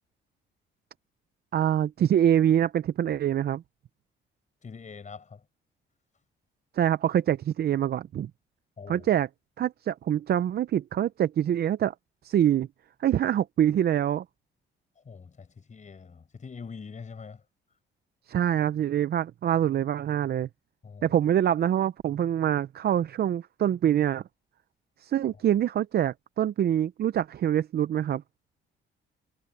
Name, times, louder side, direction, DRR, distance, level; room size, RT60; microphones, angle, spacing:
voice 1, 1.5-3.6 6.7-8.3 8.9-9.3 9.6-11.9 12.2-12.7 13.0-14.2 18.3-20.5 21.0-24.2 25.0-28.2, right 10 dB, 55° right, 0.5 m, -25 dB
voice 2, 4.6-5.4 8.8-9.1 15.0-17.4 20.8-21.2, left 5 dB, 40° left, 5.8 m, -44 dB
cardioid pair, 90°, 20 cm